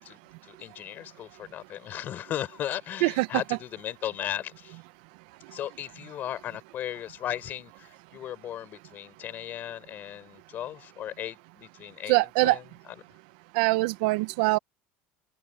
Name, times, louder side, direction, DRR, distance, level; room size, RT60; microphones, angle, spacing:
voice 1, 0.0-4.8 5.5-13.0, left 11 dB, 45° left, 5.2 m, -37 dB
voice 2, 12.1-12.6 13.5-14.6, right 23 dB, 85° right, 0.6 m, -23 dB
cardioid pair, 135°, 5 cm